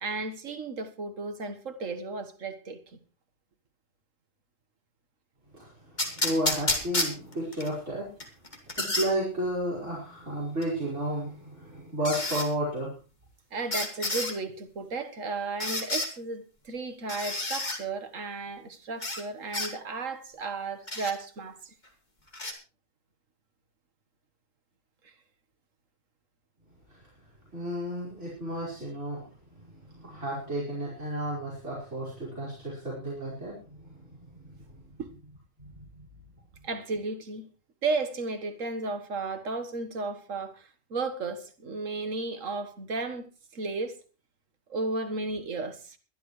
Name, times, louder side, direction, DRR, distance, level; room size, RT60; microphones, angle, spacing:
voice 1, 0.0-3.0 13.5-21.7 25.0-25.1 35.0-35.1 36.6-37.5 37.8-43.3 43.5-44.0 44.7-46.0, right 3 dB, 85° right, 1.9 m, -34 dB
voice 2, 5.5-8.1 8.8-12.9 26.9-27.0 27.5-29.2 29.6-34.5 35.6-36.1, right 1 dB, 70° right, 5.2 m, -33 dB
sound 1, 6.0-7.7 8.2-9.1 10.6-10.7 12.0-12.5 13.7-14.3 15.6-16.1 17.1-17.8 19.0-19.2 19.5-19.7 20.9-21.1 22.3-22.5, left 2 dB, 35° left, 2.4 m, -30 dB
22.0 x 11.5 x 3.2 m
omnidirectional pair, 1.3 m